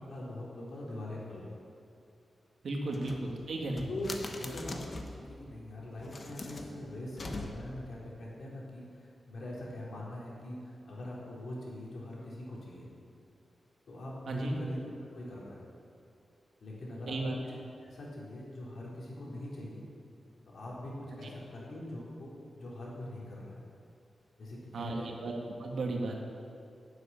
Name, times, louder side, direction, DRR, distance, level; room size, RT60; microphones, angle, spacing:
voice 1, 0.1-1.6 2.8-3.0 3.9-4.1 4.4-12.9 13.9-15.6 16.6-17.1 17.8-19.8 20.5-23.6 24.4-25.1, left 1 dB, 65° left, -5 dB, 4.1 m, -42 dB
voice 2, 2.6-3.9 14.3-14.6 17.1-17.3 24.7-25.3 25.6-26.3, right 2 dB, 70° right, 1 dB, 2.0 m, -34 dB
sound 1, 2.9-5.3 5.9-7.9, left 2 dB, 40° left, 1.1 m, -43 dB
12.0 x 8.2 x 9.0 m, 2.5 s
wide cardioid pair, 130°, 0 cm